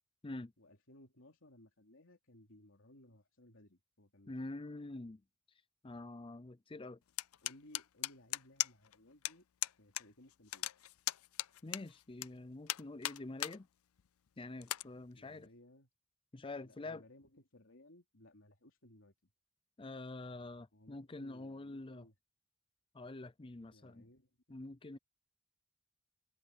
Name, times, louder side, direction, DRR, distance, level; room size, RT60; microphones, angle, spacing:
voice 1, 0.6-4.3 7.4-9.5 9.8-10.7 15.2-15.9 16.6-19.1 20.7-22.1 23.7-24.3 24.6-24.7, left 1 dB, 65° left, 3.6 m, -61 dB
voice 2, 4.3-5.2 5.8-7.0 11.6-13.7 14.4-15.5 16.3-17.0 19.8-22.1 22.9-24.0 24.5-25.0, left 2 dB, 25° left, 0.5 m, -46 dB
sound 1, 7.2-8.9 9.2-9.3 9.6-10.0 10.3-12.3 12.7-13.6 14.0-14.1 14.6-14.8, left 15 dB, 90° left, 0.5 m, -37 dB
head